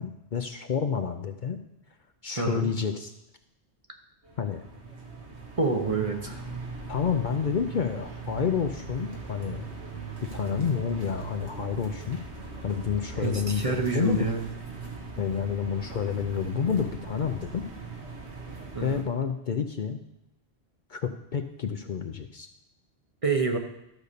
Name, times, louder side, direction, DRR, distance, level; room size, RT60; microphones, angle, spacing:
voice 1, 0.0-1.6 2.2-3.1 4.4-4.6 6.9-9.7 10.2-12.2 12.6-14.3 15.2-17.7 18.8-20.0 20.9-22.5, left 7 dB, 55° left, 7 dB, 0.7 m, -29 dB
voice 2, 2.4-2.7 5.6-6.4 13.1-14.4 18.7-19.0 23.2-23.6, right 4 dB, 35° right, 4 dB, 0.9 m, -27 dB
sound 1, 4.2-19.0, right 4 dB, 85° right, 1.9 m, -40 dB
12.5 x 5.3 x 6.7 m, 0.88 s
omnidirectional pair, 1.1 m